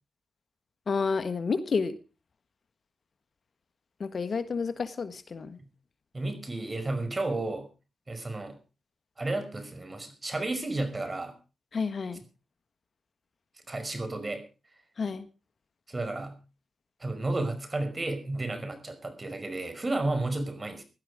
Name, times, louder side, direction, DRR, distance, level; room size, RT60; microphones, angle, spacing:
voice 1, 0.9-2.0 4.0-5.6 11.7-12.2 15.0-15.3, left 5 dB, 55° left, 12 dB, 1.5 m, -30 dB
voice 2, 6.1-7.7 8.1-8.6 9.2-11.3 13.7-14.4 15.9-16.4 17.0-20.8, right 2 dB, 30° right, 9 dB, 5.4 m, -32 dB
17.0 x 12.0 x 5.0 m, 0.34 s
supercardioid pair, 50°, 0 cm